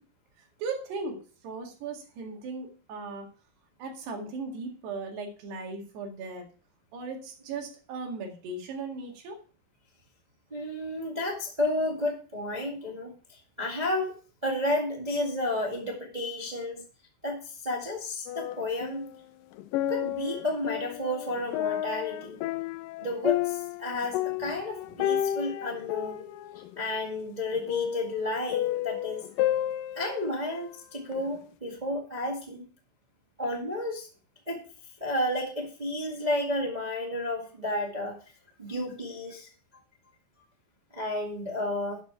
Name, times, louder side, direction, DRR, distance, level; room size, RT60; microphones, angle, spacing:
voice 1, 0.6-3.3 3.8-6.5 6.9-9.4, right 4 dB, 85° right, 2 dB, 4.2 m, -37 dB
voice 2, 10.5-14.1 14.4-16.8 17.2-19.1 19.9-22.4 23.0-26.2 26.8-29.3 29.9-32.7 33.4-34.1 34.5-34.7 35.0-38.2 38.6-39.5 40.9-42.0, left 1 dB, 55° right, -1 dB, 0.4 m, -32 dB
sound 1, 18.3-19.2 19.5-30.6 31.1-31.2, left 12 dB, 90° left, 1.9 m, -32 dB
12.0 x 6.7 x 4.6 m, 0.37 s
omnidirectional pair, 4.6 m